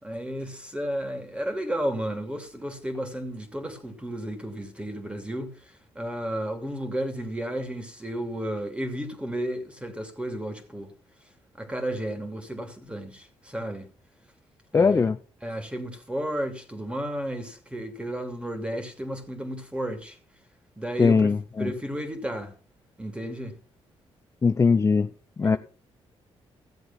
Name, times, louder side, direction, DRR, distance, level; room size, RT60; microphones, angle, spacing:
voice 1, 0.0-5.5 5.9-10.9 11.6-13.9 14.7-15.0 15.4-20.2 20.8-21.3 21.6-22.5 23.0-23.5 25.4-25.6, right 1 dB, 10° right, 2.8 m, -33 dB
voice 2, 14.7-15.2 21.0-21.7 24.4-25.1 25.4-25.6, left 5 dB, 25° left, 0.6 m, -20 dB
15.0 x 7.8 x 5.7 m
cardioid pair, 100°, 11 cm